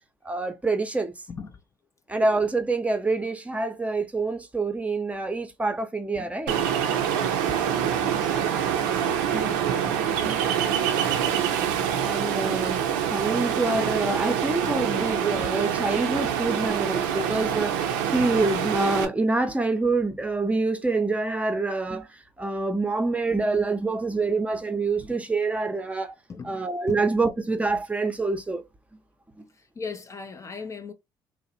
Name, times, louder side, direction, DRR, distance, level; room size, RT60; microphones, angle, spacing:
voice 1, 0.2-1.1 2.1-6.6 7.5-7.6 8.1-8.2 9.3-10.5 11.3-11.7 12.0-12.8 13.1-26.1 26.4-28.6 29.4-29.5, right 3 dB, 15° right, 0.6 m, -26 dB
voice 2, 1.3-1.6 8.0-8.4 26.3-26.6 26.9-27.1 29.5-30.9, left 5 dB, 30° left, 0.4 m, -38 dB
Ocean, 6.5-19.0, right 8 dB, 85° right, 0.4 m, -25 dB
2.7 x 2.0 x 2.6 m
supercardioid pair, 65°, 10 cm